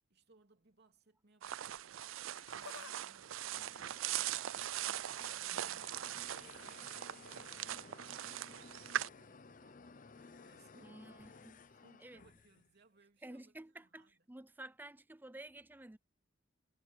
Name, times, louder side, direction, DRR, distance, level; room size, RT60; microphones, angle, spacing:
voice 1, 0.1-7.1 7.7-8.7 9.0-11.3 11.8-14.2, right 3 dB, 55° right, 3.2 m, -68 dB
sound 1, 1.4-9.1, right 12 dB, 70° right, 0.4 m, -41 dB
Laughter, 2.1-3.0 3.2-4.6 5.5-5.9 7.2-7.4 8.3-8.4, left 6 dB, 85° left, 1.2 m, -55 dB
sound 2, 3.0-12.7, left 4 dB, 40° left, 0.7 m, -57 dB
voice 2, 10.8-11.6 12.0-12.2 13.2-16.0, right 1 dB, 10° right, 0.5 m, -52 dB
head